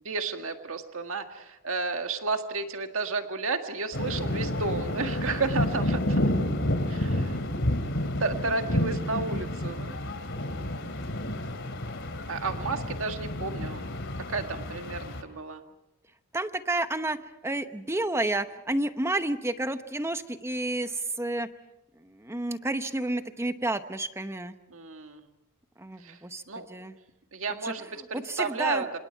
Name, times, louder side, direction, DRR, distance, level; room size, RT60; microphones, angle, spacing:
voice 1, 0.1-6.2 6.9-7.4 8.0-9.9 12.3-13.9 14.3-15.6 24.7-25.2 26.0-26.2 26.5-26.7 27.3-29.0, right 3 dB, 65° right, 6 dB, 1.8 m, -32 dB
sound 1, 3.9-15.2, left 1 dB, 60° left, 2.6 m, -30 dB
voice 2, 16.3-21.5 22.0-24.6 25.8-27.0 27.6-28.8, right 2 dB, 10° right, 10 dB, 0.9 m, -31 dB
27.0 x 27.0 x 4.6 m, 0.89 s
head